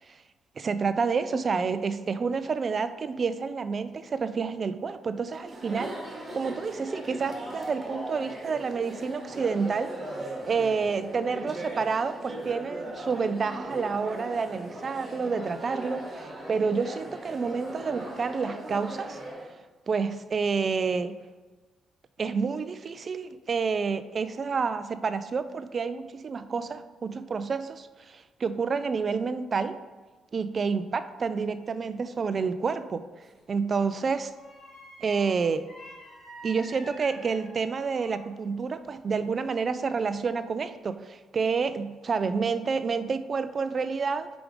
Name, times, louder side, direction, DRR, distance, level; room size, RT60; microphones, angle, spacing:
voice 1, 0.6-6.0 6.3-9.9 10.5-19.2 19.9-21.1 22.2-29.8 30.3-33.0 33.5-34.3 35.0-35.7 36.4-44.3, right 5 dB, 40° right, 12 dB, 0.4 m, -29 dB
Chatter, 5.3-19.5, right 1 dB, 25° right, 2.1 m, -39 dB
sound 1, 33.2-33.5 34.4-38.4 38.7-39.7 40.1-40.3, equal, 40° left, 1.9 m, -48 dB
5.0 x 4.9 x 4.9 m, 1.3 s
cardioid pair, 90°, 0 cm